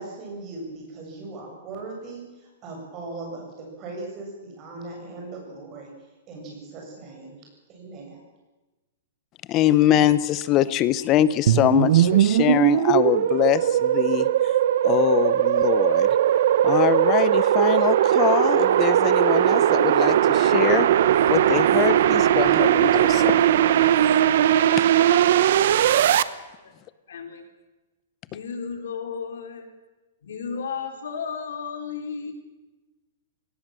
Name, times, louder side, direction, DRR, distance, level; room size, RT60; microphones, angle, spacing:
voice 1, 0.0-5.9 6.3-8.2, right 3 dB, 25° right, 0 dB, 7.4 m, -39 dB
voice 2, 9.5-14.5 14.8-16.2 16.6-20.9 21.3-23.4 24.7-24.8, left 13 dB, 25° left, 17 dB, 0.7 m, -23 dB
sound 1, 11.5-26.2, right 11 dB, 55° right, 0.9 m, -19 dB
voice 3, 27.1-27.4 28.3-29.7 30.2-32.3, left 6 dB, 85° left, 5 dB, 4.2 m, -33 dB
20.5 x 18.5 x 7.6 m, 1.1 s
hypercardioid pair, 170°, 0 cm